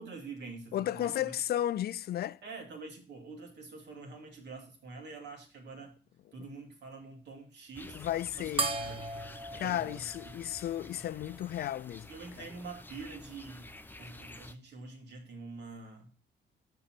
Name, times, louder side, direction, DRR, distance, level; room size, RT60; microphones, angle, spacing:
voice 1, 0.0-1.3 2.4-6.0 6.3-8.0 8.4-9.0 9.5-10.4 12.1-13.7 14.0-16.1, right 3 dB, 60° right, 2.5 m, -46 dB
voice 2, 0.7-2.4 6.4-6.5 7.9-8.7 9.5-12.1 12.4-12.5, left 12 dB, 55° left, 0.4 m, -34 dB
sound 1, 7.7-14.6, left 2 dB, 10° left, 0.7 m, -50 dB
sound 2, 8.6-11.4, right 3 dB, 30° right, 1.0 m, -37 dB
6.5 x 5.6 x 5.9 m
cardioid pair, 90°, 20 cm